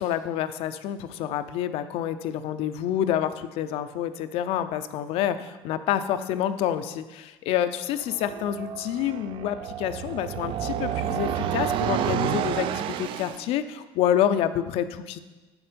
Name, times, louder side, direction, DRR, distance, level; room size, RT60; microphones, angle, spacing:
voice 1, 0.0-15.2, left 10 dB, 70° left, 11 dB, 0.5 m, -28 dB
sound 1, 8.0-13.5, right 10 dB, 55° right, 0.4 m, -30 dB
8.5 x 7.1 x 5.1 m, 1.2 s
cardioid pair, 150°, 10 cm